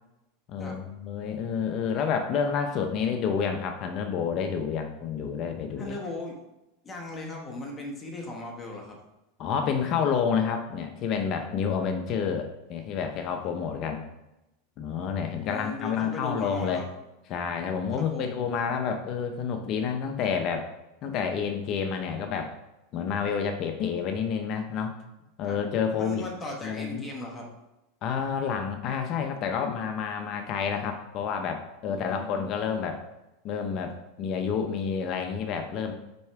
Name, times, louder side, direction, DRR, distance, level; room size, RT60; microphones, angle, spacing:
voice 1, 0.5-6.0 9.4-14.0 14.8-16.8 17.3-20.7 21.0-22.5 22.9-24.9 25.4-26.2 26.6-27.1 28.0-33.0 33.4-33.9 34.2-35.9, left 6 dB, 40° left, 5 dB, 0.6 m, -29 dB
voice 2, 5.8-6.4 6.8-9.0 15.4-16.9 17.9-18.3 25.4-25.6 26.0-27.5 31.9-32.5, left 2 dB, 15° left, 0 dB, 1.2 m, -38 dB
5.4 x 4.4 x 4.6 m, 0.95 s
supercardioid pair, 145°, 0 cm